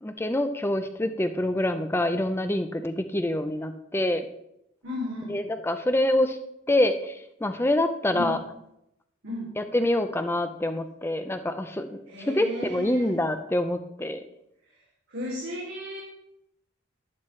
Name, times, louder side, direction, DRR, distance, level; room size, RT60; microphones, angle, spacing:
voice 1, 0.0-4.2 5.3-6.4 6.7-8.4 9.6-12.0 12.3-14.2, left 1 dB, 10° left, 8 dB, 0.5 m, -26 dB
voice 2, 4.8-5.4 8.1-8.4 9.2-9.5 12.1-13.1 15.1-16.0, left 1 dB, 80° right, -5 dB, 2.9 m, -34 dB
12.0 x 9.3 x 3.2 m, 0.81 s
head